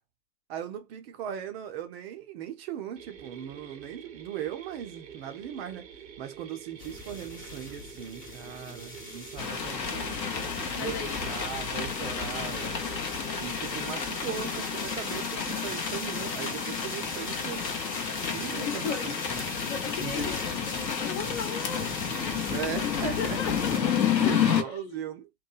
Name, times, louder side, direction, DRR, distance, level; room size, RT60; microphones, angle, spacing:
voice 1, 0.5-5.9 6.2-10.2 10.8-12.8 13.4-17.7 18.3-19.2 20.0-20.3 22.5-23.4 24.2-25.3, right 9 dB, 40° right, 0.5 m, -38 dB
sound 1, 3.0-15.2, right 8 dB, 85° right, 0.7 m, -47 dB
sound 2, 6.8-23.8, left 2 dB, 15° left, 0.9 m, -40 dB
sound 3, 9.4-24.6, left 7 dB, 90° left, 0.7 m, -31 dB
voice 2, 10.8-11.1 18.4-19.1 19.7-25.0, left 7 dB, 45° left, 0.7 m, -37 dB
3.0 x 2.2 x 2.2 m
figure-of-eight pair, 95°, 49 cm